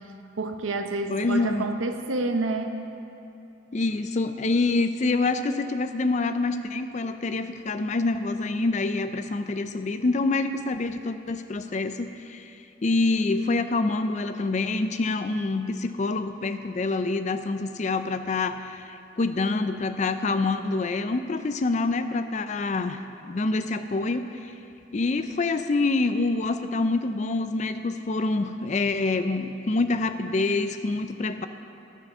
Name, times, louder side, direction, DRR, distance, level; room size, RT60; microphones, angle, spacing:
voice 1, 0.4-2.9, right 2 dB, 85° right, 6 dB, 0.8 m, -28 dB
voice 2, 1.1-1.7 3.7-24.5 24.9-31.5, left 3 dB, 35° left, 9 dB, 0.4 m, -26 dB
11.5 x 9.1 x 6.1 m, 2.7 s
head